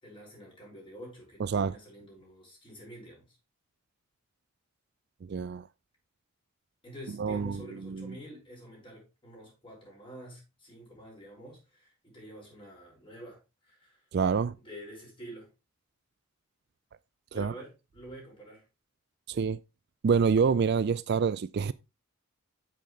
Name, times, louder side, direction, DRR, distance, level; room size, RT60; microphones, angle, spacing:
voice 1, 0.0-3.4 6.8-14.0 14.6-15.5 17.3-18.6, equal, 25° left, 5.3 m, -48 dB
voice 2, 1.4-1.7 5.2-5.7 7.2-8.2 14.1-14.6 17.3-17.5 19.3-19.6 20.0-21.7, right 5 dB, 50° right, 0.4 m, -27 dB
8.9 x 7.7 x 3.2 m
head